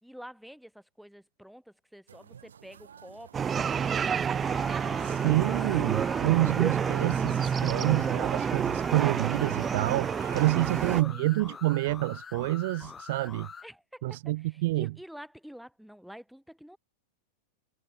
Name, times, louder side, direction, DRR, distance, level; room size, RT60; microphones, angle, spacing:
voice 1, 0.0-5.6 10.5-11.7 13.6-16.8, equal, ahead, 4.3 m, -49 dB
sound 1, 2.1-11.0, right 8 dB, 85° right, 5.2 m, -51 dB
sound 2, 3.3-11.0, right 7 dB, 25° right, 2.5 m, -29 dB
sound 3, 4.4-13.7, left 6 dB, 20° left, 1.8 m, -45 dB
voice 2, 5.0-13.5 14.0-14.9, right 19 dB, 65° right, 0.5 m, -28 dB
hypercardioid pair, 105°, 0 cm